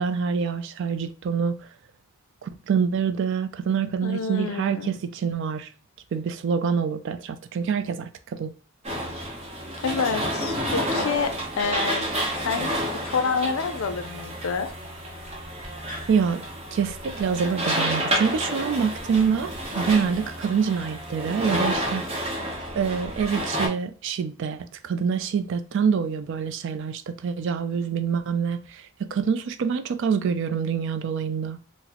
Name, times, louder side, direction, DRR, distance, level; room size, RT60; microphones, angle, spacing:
voice 1, 0.0-1.6 2.4-5.7 6.1-8.5 16.1-16.4 16.7-22.0 22.3-22.5 22.7-31.6, right 6 dB, 55° right, 0.3 m, -26 dB
voice 2, 4.0-4.9 9.8-12.0 12.3-14.7, left 5 dB, 70° left, 0.4 m, -28 dB
sound 1, 8.8-23.7, equal, 30° right, 0.8 m, -30 dB
3.8 x 2.0 x 2.9 m
head